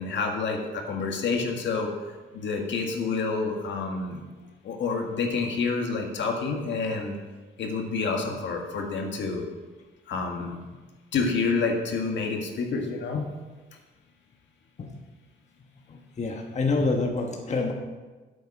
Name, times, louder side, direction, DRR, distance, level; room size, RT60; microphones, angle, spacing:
voice 1, 0.0-1.9 2.3-4.2 4.6-7.2 7.6-9.4 10.1-10.6 11.1-13.3, left 4 dB, 65° left, 2 dB, 1.8 m, -28 dB
voice 2, 15.9-17.7, left 3 dB, 35° left, 2 dB, 1.2 m, -27 dB
8.6 x 7.9 x 6.0 m, 1.3 s
cardioid pair, 90°, 20 cm